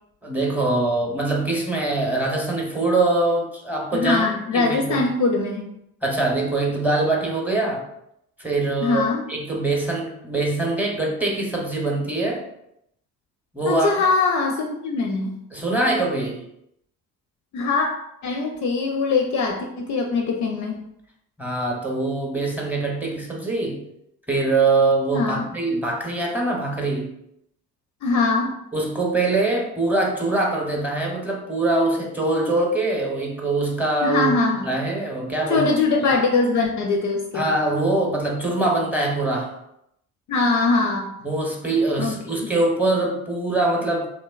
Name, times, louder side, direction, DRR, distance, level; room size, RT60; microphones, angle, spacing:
voice 1, 0.2-5.0 6.0-7.8 8.4-12.4 13.5-13.9 15.5-16.4 21.4-23.8 24.3-27.1 28.7-34.3 34.6-35.7 37.3-39.5 41.2-44.1, right 2 dB, 5° right, 0 dB, 0.7 m, -23 dB
voice 2, 3.9-5.7 8.8-9.2 13.6-15.4 17.5-17.9 18.2-20.8 25.1-25.5 28.0-28.6 34.0-34.7 35.5-37.5 40.3-41.1 42.0-42.2, left 3 dB, 45° left, 2 dB, 0.4 m, -22 dB
2.9 x 2.1 x 2.3 m, 0.78 s
hypercardioid pair, 45°, 41 cm